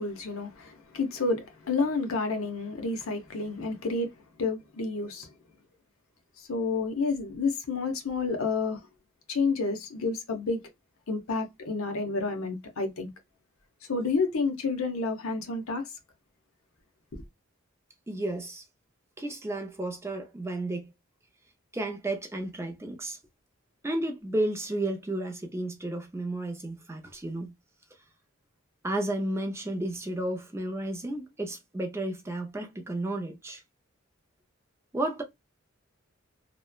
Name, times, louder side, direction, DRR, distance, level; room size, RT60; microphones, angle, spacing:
voice 1, 0.0-4.1 4.4-5.3 6.4-8.8 9.3-10.6 11.1-13.1 13.9-15.9 17.1-17.2, left 4 dB, 75° left, 0.7 m, -30 dB
voice 2, 18.1-18.6 19.2-20.9 21.7-23.2 23.8-27.5 28.8-33.6 34.9-35.2, right 1 dB, 10° right, 0.4 m, -32 dB
3.0 x 2.1 x 2.2 m
head